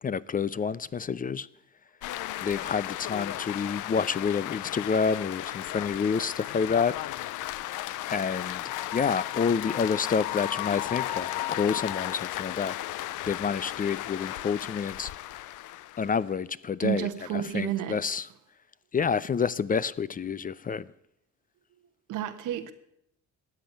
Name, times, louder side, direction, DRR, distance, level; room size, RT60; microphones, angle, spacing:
voice 1, 0.0-1.5 2.4-7.0 8.1-12.8 13.3-15.1 16.0-18.3 18.9-20.9, left 6 dB, 30° left, 0.4 m, -28 dB
sound 1, 2.0-16.3, left 15 dB, 85° left, 0.6 m, -35 dB
voice 2, 16.8-18.0 22.1-22.7, right 10 dB, 90° right, 1.4 m, -31 dB
13.0 x 8.7 x 9.2 m
cardioid pair, 90°, 30 cm